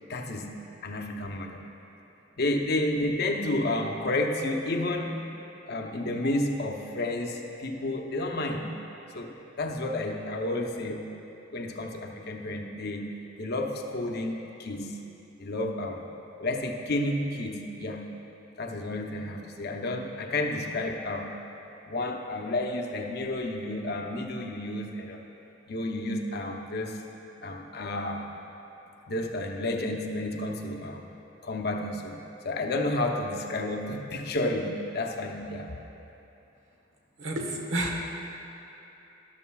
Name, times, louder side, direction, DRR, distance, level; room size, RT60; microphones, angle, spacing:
voice 1, 0.1-0.5 0.8-1.6 2.4-5.2 5.7-8.7 9.1-11.0 11.5-13.1 13.4-15.0 15.4-16.1 16.4-18.0 18.6-21.3 21.9-25.2 25.7-27.0 27.4-28.3 29.1-31.1 31.4-35.7, left 1 dB, 55° left, 3 dB, 0.7 m, -31 dB
voice 2, 37.2-38.1, right 1 dB, 75° right, 0 dB, 1.3 m, -30 dB
13.0 x 12.0 x 2.3 m, 3.0 s
head